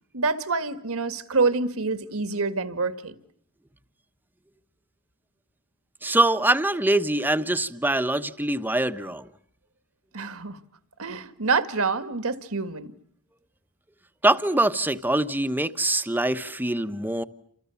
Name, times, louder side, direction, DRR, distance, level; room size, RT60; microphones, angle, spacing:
voice 1, 0.1-3.2 10.1-10.6 11.0-12.9, right 4 dB, 70° right, 1.9 m, -26 dB
voice 2, 6.0-9.3 14.2-17.2, right 1 dB, 10° right, 1.1 m, -23 dB
29.5 x 27.5 x 7.1 m
head